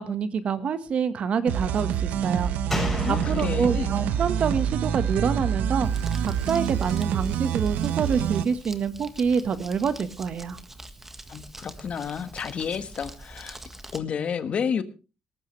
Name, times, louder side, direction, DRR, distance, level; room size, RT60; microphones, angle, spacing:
voice 1, 0.0-2.5 3.1-5.9 6.2-10.6, right 6 dB, 50° right, 11 dB, 1.5 m, -26 dB
sound 1, 1.5-8.4, right 9 dB, 85° right, 1.1 m, -27 dB
Slam, 2.7-6.2 6.5-6.6, left 1 dB, 10° left, 6.9 m, -34 dB
voice 2, 3.0-3.9 11.3-13.6 13.9-14.8, left 7 dB, 50° left, 11 dB, 1.4 m, -30 dB
Crumpling crinkling, 5.8-14.0, right 1 dB, 10° right, 1.6 m, -44 dB
18.5 x 14.5 x 3.3 m, 0.32 s
cardioid pair, 110°, 3 cm